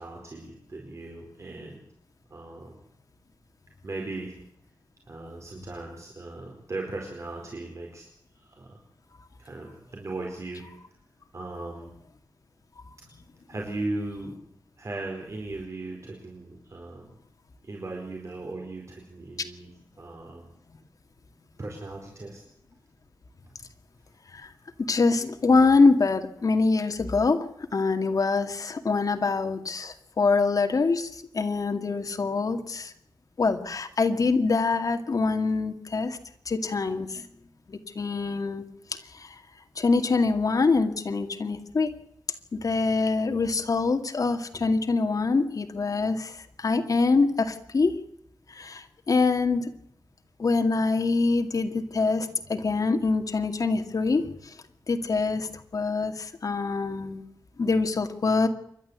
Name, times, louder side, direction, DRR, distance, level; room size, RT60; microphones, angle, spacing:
voice 1, 0.0-1.8 2.3-2.7 3.8-4.3 5.1-8.1 8.4-8.8 9.4-10.7 11.3-11.9 13.5-14.3 14.8-17.1 17.6-19.7 20.0-20.5 21.6-22.4, right 2 dB, 45° right, 0 dB, 4.6 m, -37 dB
voice 2, 24.8-32.9 33.4-36.2 36.5-37.3 37.7-38.6 38.9-39.4 39.8-41.9 42.5-48.0 48.5-49.7 50.4-54.5 54.9-57.2 57.6-58.5, left 4 dB, 55° left, 6 dB, 2.2 m, -25 dB
27.5 x 12.0 x 8.1 m, 0.73 s
wide cardioid pair, 120°, 7 cm